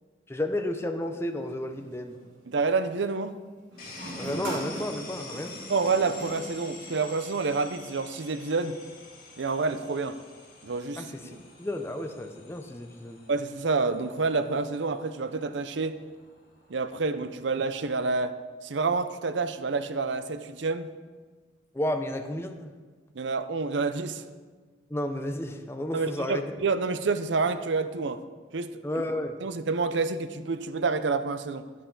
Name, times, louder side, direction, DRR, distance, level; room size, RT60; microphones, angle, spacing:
voice 1, 0.3-2.2 4.2-5.6 11.0-13.2 21.7-22.8 24.9-26.4 28.8-29.4, left 1 dB, 15° left, 6 dB, 0.6 m, -32 dB
sound 1, 1.0-2.3 3.7-7.3, right 1 dB, 90° right, 3.2 m, -40 dB
voice 2, 2.5-3.3 5.7-8.8 9.4-10.2 10.6-11.4 13.3-16.0 16.7-18.4 18.6-20.9 23.1-24.2 25.9-28.2 28.5-28.8 29.4-31.6, right 4 dB, 75° right, 12 dB, 0.6 m, -28 dB
sound 2, 3.8-17.5, left 3 dB, 50° left, 2.6 m, -48 dB
12.5 x 10.5 x 3.9 m, 1.4 s
head